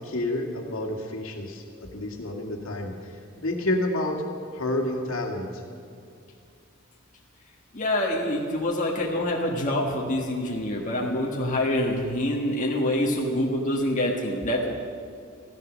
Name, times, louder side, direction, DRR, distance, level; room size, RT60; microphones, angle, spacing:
voice 1, 0.0-4.2 4.5-5.6, left 1 dB, 70° left, 1 dB, 2.1 m, -29 dB
voice 2, 7.7-14.7, left 1 dB, 35° left, -2 dB, 1.6 m, -26 dB
15.5 x 13.5 x 6.3 m, 2.3 s
head